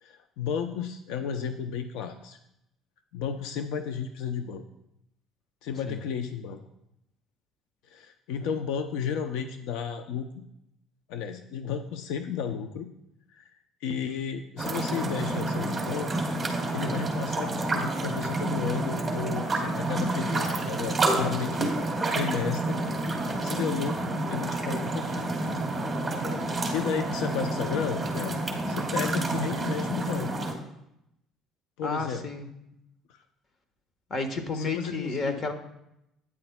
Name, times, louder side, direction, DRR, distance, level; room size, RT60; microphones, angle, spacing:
voice 1, 0.0-2.4 3.1-4.6 5.6-6.6 7.8-10.3 11.1-12.9 13.3-13.5 13.8-16.1 16.7-21.7 22.1-22.8 23.4-25.3 26.7-28.4 28.7-30.3 31.8-32.2 33.1-33.2 34.5-35.4, left 7 dB, 85° left, 7 dB, 0.6 m, -33 dB
sound 1, 14.6-30.5, right 2 dB, 15° right, 2.4 m, -29 dB
voice 2, 25.8-26.6 31.8-32.5 34.1-35.5, left 3 dB, 40° left, 7 dB, 1.3 m, -33 dB
12.0 x 9.7 x 2.3 m, 0.83 s
cardioid pair, 105°, 0 cm